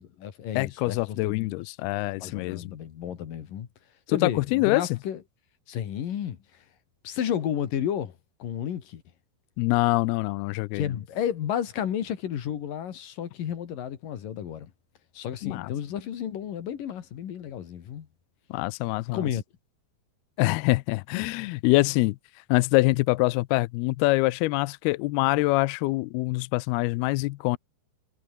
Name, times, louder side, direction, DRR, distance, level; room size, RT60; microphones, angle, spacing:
voice 1, 0.0-1.6 2.2-3.7 4.1-5.2 5.7-6.4 7.0-9.0 10.7-14.7 15.1-18.1 19.1-19.4, left 9 dB, 55° left, 3.3 m, -32 dB
voice 2, 0.6-2.7 4.1-4.9 9.6-10.9 15.4-15.7 18.5-19.2 20.4-22.2 22.5-27.6, left 21 dB, 80° left, 2.3 m, -25 dB
omnidirectional pair, 5.0 m